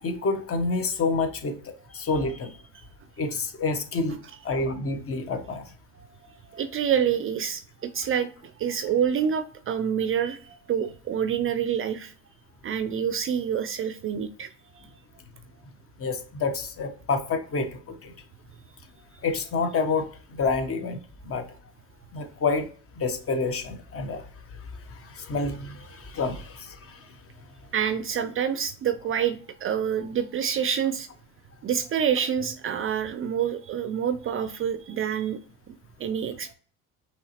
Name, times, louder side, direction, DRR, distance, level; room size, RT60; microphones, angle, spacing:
voice 1, 0.0-2.6 3.2-4.2 4.4-5.6 16.0-18.1 19.2-21.0 21.2-21.4 22.1-22.7 23.0-24.2 24.9-27.1, left 4 dB, 35° left, 7 dB, 1.0 m, -28 dB
voice 2, 6.3-12.1 12.6-14.9 27.7-31.1 31.6-35.4 35.7-36.5, right 8 dB, 35° right, 12 dB, 0.4 m, -27 dB
5.5 x 3.1 x 2.9 m, 0.42 s
supercardioid pair, 85°, 38 cm